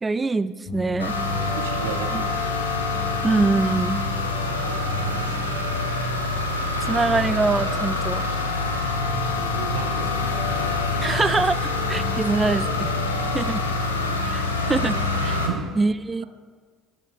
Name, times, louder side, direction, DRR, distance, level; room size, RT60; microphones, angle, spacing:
voice 1, 0.0-1.2 2.1-2.2 3.2-4.0 6.9-8.3 11.0-12.9 13.3-13.6 14.2-15.0 15.2-15.4 15.8-16.2, right 3 dB, 20° right, 15 dB, 0.3 m, -24 dB
sound 1, 0.7-15.5, left 3 dB, 40° left, 1.5 m, -36 dB
sound 2, 1.0-15.5, left 3 dB, 85° left, 0.7 m, -26 dB
voice 2, 1.6-2.3 5.0-5.6 9.2-10.2 13.4-13.5 15.5-15.7, right 7 dB, 70° right, 6 dB, 0.7 m, -33 dB
12.0 x 4.2 x 5.0 m, 1.5 s
figure-of-eight pair, 60°, 0 cm